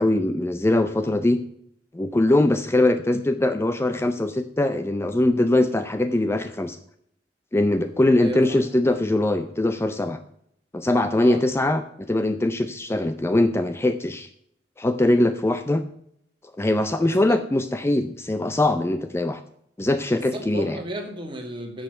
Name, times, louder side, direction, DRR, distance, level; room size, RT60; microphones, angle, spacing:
voice 1, 0.0-1.4 1.9-6.8 7.5-10.2 10.7-14.3 14.8-15.8 16.6-19.4 19.8-20.8, left 1 dB, 15° left, 9 dB, 0.5 m, -22 dB
voice 2, 8.2-8.6 11.2-11.4 17.0-17.4 20.1-21.8, right 1 dB, 30° right, 2 dB, 2.2 m, -34 dB
10.0 x 6.4 x 6.5 m, 0.71 s
head